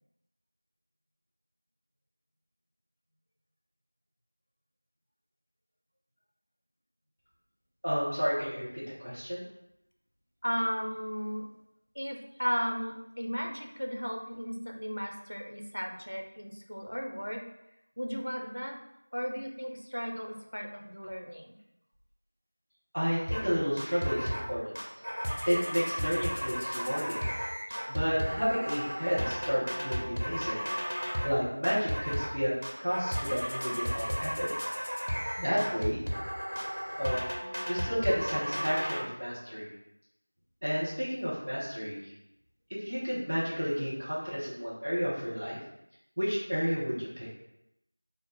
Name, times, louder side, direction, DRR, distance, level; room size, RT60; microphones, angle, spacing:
voice 1, 7.8-9.4 22.9-24.8 25.4-27.2 27.9-30.6 31.0-34.5 35.4-36.0 37.0-39.7 40.6-42.1 42.7-45.6 46.2-47.3, equal, 10° right, -9 dB, 0.3 m, -31 dB
voice 2, 10.4-11.5 11.9-17.4 18.0-18.8 19.1-21.6, equal, 70° left, 2 dB, 0.6 m, -35 dB
sound 1, 23.3-23.5 23.8-24.5 24.7-31.4 31.6-32.4 32.6-39.0, equal, 75° right, 0.9 m, -34 dB
3.7 x 2.0 x 3.8 m, 0.84 s
figure-of-eight pair, 180°, 0 cm